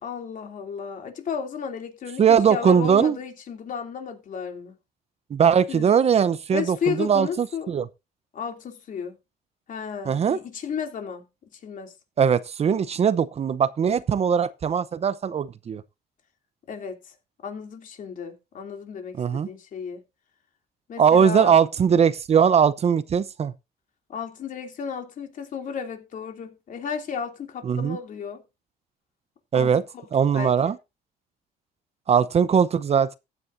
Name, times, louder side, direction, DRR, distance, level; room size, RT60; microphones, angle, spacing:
voice 1, 0.0-4.7 5.7-5.9 6.5-7.7 8.3-9.1 9.7-11.2 11.6-11.9 16.7-17.1 17.4-20.0 20.9-21.6 24.1-28.4 29.5-29.7 30.3-30.5, left 6 dB, 50° left, 3.0 m, -33 dB
voice 2, 2.2-3.2 5.3-7.9 10.0-10.4 12.2-15.8 19.2-19.5 21.0-23.5 27.6-28.0 29.5-29.8 30.1-30.8 32.1-33.2, right 7 dB, 40° right, 0.7 m, -20 dB
15.0 x 9.7 x 2.7 m
cardioid pair, 110°, 17 cm